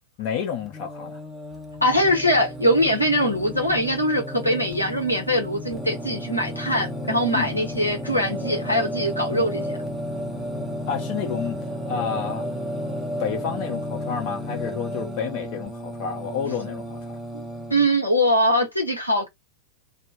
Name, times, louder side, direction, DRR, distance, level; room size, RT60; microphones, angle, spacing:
voice 1, 0.2-1.2 7.3-7.5 9.3-9.5 10.9-11.6 11.8-12.5 13.2-17.2, left 7 dB, 45° left, 0.8 m, -30 dB
Singing, 0.6-17.7, equal, 5° right, 0.8 m, -33 dB
voice 2, 1.8-9.8 17.3-17.4 17.7-19.3, equal, 85° left, 0.8 m, -22 dB
2.2 x 2.1 x 3.3 m
figure-of-eight pair, 90°, 0 cm